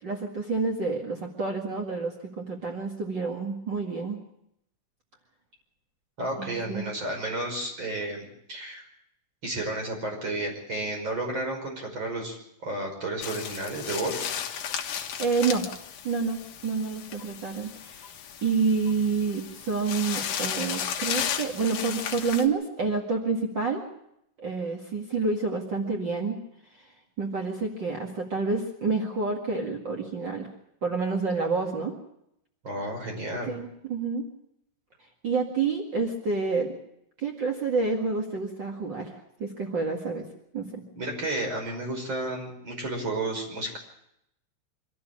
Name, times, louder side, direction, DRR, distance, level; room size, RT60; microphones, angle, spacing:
voice 1, 0.0-4.2 6.4-6.9 15.2-15.7 16.0-18.1 18.4-23.8 24.4-26.4 26.7-26.9 27.2-30.5 30.8-31.9 33.4-34.3 35.2-36.8 37.2-40.2 40.5-40.8, right 4 dB, 65° right, 1 dB, 1.1 m, -28 dB
voice 2, 6.2-8.9 9.4-12.4 12.6-14.3 32.6-33.5 41.0-43.8, right 2 dB, 25° right, 2 dB, 5.8 m, -32 dB
sound 1, 13.2-22.5, left 8 dB, 60° left, 2.5 m, -34 dB
25.0 x 14.0 x 8.5 m, 0.78 s
omnidirectional pair, 5.6 m